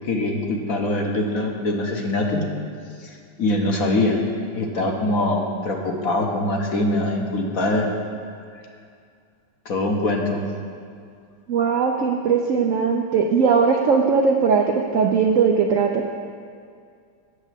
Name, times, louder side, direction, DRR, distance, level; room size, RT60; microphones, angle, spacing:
voice 1, 0.0-2.4 3.0-4.2 4.5-7.9 9.6-10.4, left 2 dB, 55° left, 1 dB, 1.3 m, -23 dB
voice 2, 11.5-16.0, right 5 dB, 70° right, 2 dB, 0.7 m, -19 dB
8.1 x 6.8 x 7.4 m, 2.3 s
omnidirectional pair, 1.9 m